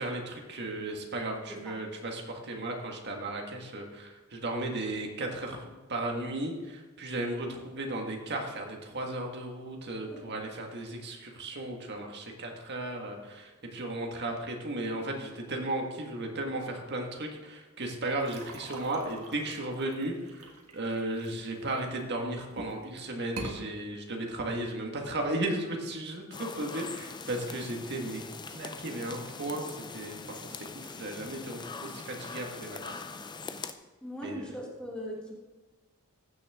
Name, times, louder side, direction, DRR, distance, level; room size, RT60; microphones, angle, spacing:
voice 1, 0.0-28.2 28.5-32.8 34.2-34.5, right 1 dB, 50° right, 2 dB, 1.6 m, -35 dB
voice 2, 1.5-1.8 10.1-10.4 34.0-35.3, equal, 5° left, -2 dB, 1.4 m, -40 dB
sound 1, 18.2-22.0 22.5-22.9 23.2-23.6, right 2 dB, 90° right, 1.6 m, -44 dB
sound 2, 26.3-33.7, left 4 dB, 20° left, 0.5 m, -42 dB
15.0 x 6.4 x 3.6 m, 1.2 s
head